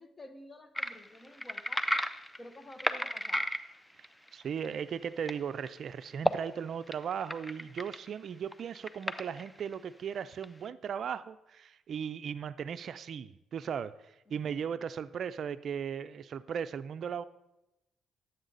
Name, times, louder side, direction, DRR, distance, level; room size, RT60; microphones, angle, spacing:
voice 1, 0.0-1.9 2.4-3.5 14.3-14.5, left 1 dB, 25° left, 9 dB, 1.0 m, -51 dB
sound 1, 0.7-4.7 5.2-5.3 5.6-5.7 6.1-6.4 6.9-8.1 8.5-9.7 10.4-10.5, equal, 5° left, 0.5 m, -33 dB
voice 2, 4.3-17.2, right 7 dB, 60° right, 14 dB, 0.4 m, -37 dB
11.0 x 8.0 x 3.9 m, 0.95 s
cardioid pair, 90°, 0 cm